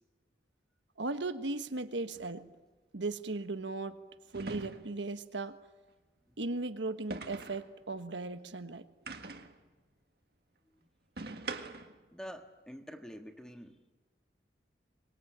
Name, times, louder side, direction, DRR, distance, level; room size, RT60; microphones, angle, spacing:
voice 1, 1.0-2.5 2.9-4.0 4.3-5.6 6.4-8.8, right 2 dB, 80° right, 9 dB, 1.3 m, -37 dB
sound 1, 2.1-2.3 4.3-5.1 7.1-7.7 9.1-9.6 11.2-12.0, right 3 dB, 55° right, 1.8 m, -42 dB
voice 2, 12.1-13.8, equal, 5° left, 5 dB, 1.6 m, -47 dB
24.5 x 22.0 x 8.8 m, 1.2 s
head